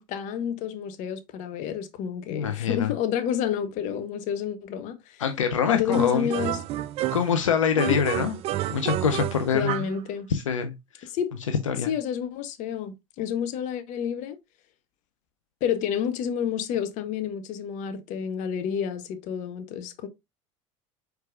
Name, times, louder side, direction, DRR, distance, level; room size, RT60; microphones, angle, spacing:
voice 1, 0.0-5.2 5.7-6.6 7.8-8.0 9.5-10.3 11.0-11.3 11.9-14.4 15.6-20.1, left 8 dB, 50° left, 1.0 m, -29 dB
voice 2, 2.3-2.9 5.2-6.3 7.1-8.3 8.7-9.8 10.3-11.1 11.7-11.9, left 7 dB, 85° left, 0.6 m, -25 dB
sound 1, 5.9-7.4 7.8-10.0, right 13 dB, 40° right, 0.4 m, -30 dB
4.6 x 4.6 x 2.4 m
hypercardioid pair, 80°, 16 cm